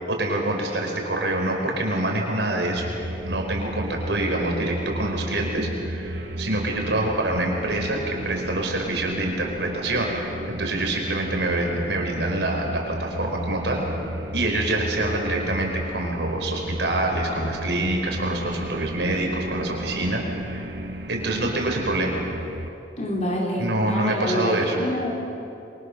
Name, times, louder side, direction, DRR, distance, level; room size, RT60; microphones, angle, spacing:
voice 1, 0.0-2.9 3.3-10.1 10.5-13.8 14.3-20.8 21.1-22.2 23.6-24.8, right 1 dB, 80° right, 1 dB, 5.2 m, -26 dB
sound 1, 2.7-22.7, right 1 dB, 65° right, 1.6 m, -33 dB
voice 2, 23.0-25.1, equal, 40° left, -1 dB, 4.1 m, -27 dB
28.5 x 24.0 x 6.7 m, 2.9 s
head